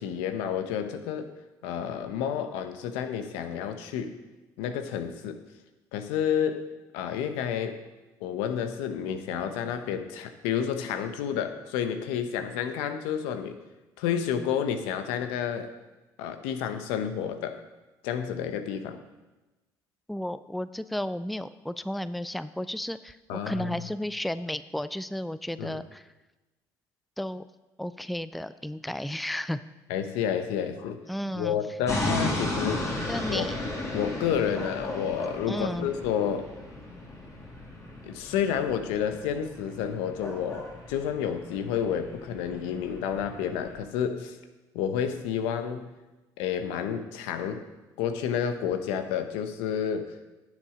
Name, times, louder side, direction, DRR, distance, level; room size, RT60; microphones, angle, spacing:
voice 1, 0.0-1.3 1.6-4.2 4.6-5.4 5.9-6.7 6.9-7.8 8.2-13.6 14.0-15.7 16.2-17.6 18.0-19.0 23.3-23.8 25.6-25.8 29.9-31.0 31.3-32.9 33.3-33.5 33.9-36.5 38.0-44.4 44.7-45.9 46.4-47.6 48.0-50.2, left 8 dB, 85° left, 8 dB, 0.9 m, -30 dB
voice 2, 20.1-26.1 27.2-27.4 27.8-29.6 31.1-31.6 33.1-33.6 35.5-35.9, left 1 dB, ahead, 14 dB, 0.4 m, -33 dB
sound 1, 31.9-43.8, left 2 dB, 35° left, 2.7 m, -35 dB
9.6 x 7.3 x 5.0 m, 1.1 s
supercardioid pair, 80°, 9 cm